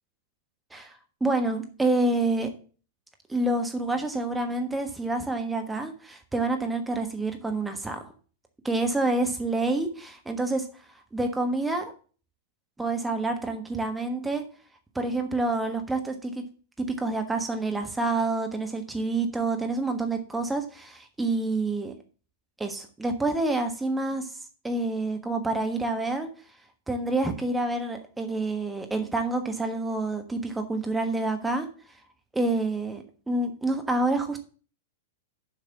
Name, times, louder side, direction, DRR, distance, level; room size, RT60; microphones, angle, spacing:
voice 1, 0.7-2.5 3.3-8.1 8.6-10.7 11.1-11.9 12.8-14.4 14.9-16.3 16.8-21.9 22.6-24.3 24.6-26.3 26.9-31.7 32.3-34.4, right 2 dB, 5° right, 5 dB, 1.3 m, -28 dB
7.3 x 5.7 x 7.0 m, 0.39 s
figure-of-eight pair, 100°, 0 cm